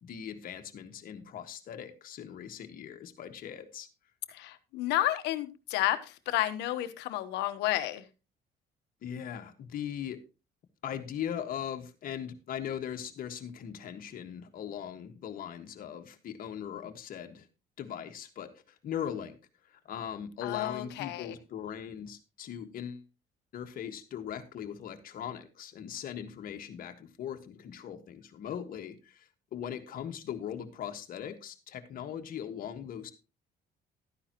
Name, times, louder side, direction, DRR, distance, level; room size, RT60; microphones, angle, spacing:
voice 1, 0.0-3.9 9.0-10.2 10.8-17.5 17.8-19.4 19.7-23.1 23.5-33.1, left 9 dB, 60° left, 6 dB, 1.6 m, -40 dB
voice 2, 4.3-8.0 20.4-21.4, left 14 dB, 85° left, 11 dB, 1.2 m, -31 dB
13.0 x 9.9 x 3.0 m, 0.31 s
cardioid pair, 110°, 17 cm